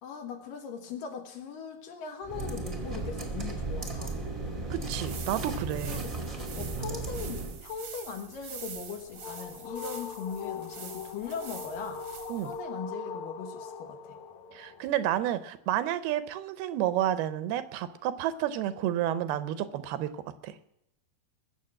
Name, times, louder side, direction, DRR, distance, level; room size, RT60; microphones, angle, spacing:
voice 1, 0.0-4.2 5.9-6.1 6.6-12.0 12.4-14.2, left 6 dB, 65° left, 5 dB, 2.9 m, -39 dB
sound 1, 2.2-7.6, right 3 dB, 15° right, 1.0 m, -35 dB
voice 2, 4.7-6.1 12.3-12.5 14.5-20.6, right 12 dB, 80° right, 13 dB, 2.7 m, -30 dB
sound 2, 4.9-12.6, right 7 dB, 55° right, 1.6 m, -46 dB
sound 3, 8.8-14.9, left 5 dB, 85° left, 1.6 m, -41 dB
21.0 x 7.3 x 7.5 m, 0.81 s
omnidirectional pair, 4.5 m